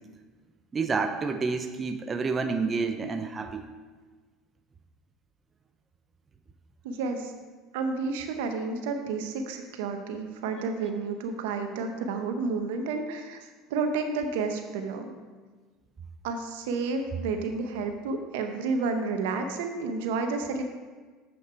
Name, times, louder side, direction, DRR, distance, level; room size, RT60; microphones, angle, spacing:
voice 1, 0.7-3.7, right 4 dB, 30° right, 7 dB, 0.6 m, -29 dB
voice 2, 6.8-7.3 7.7-15.1 16.2-20.6, right 4 dB, 80° right, 6 dB, 0.9 m, -31 dB
7.8 x 6.3 x 4.5 m, 1.4 s
supercardioid pair, 95°, 0 cm